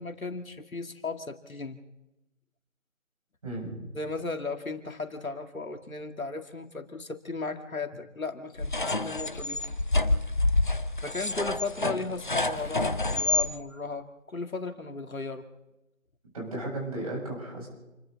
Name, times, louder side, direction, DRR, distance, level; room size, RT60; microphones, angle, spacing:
voice 1, 0.0-1.8 3.9-9.6 11.0-15.4, left 3 dB, 80° left, 6 dB, 2.3 m, -35 dB
voice 2, 3.4-3.9 11.8-11.9 16.3-17.7, right 1 dB, 25° right, -2 dB, 7.7 m, -35 dB
sound 1, 8.6-13.5, left 2 dB, 35° left, 0.8 m, -28 dB
sound 2, 11.3-13.2 13.6-13.7, left 2 dB, ahead, 3.0 m, -51 dB
28.5 x 22.5 x 4.1 m, 0.98 s
figure-of-eight pair, 170°, 41 cm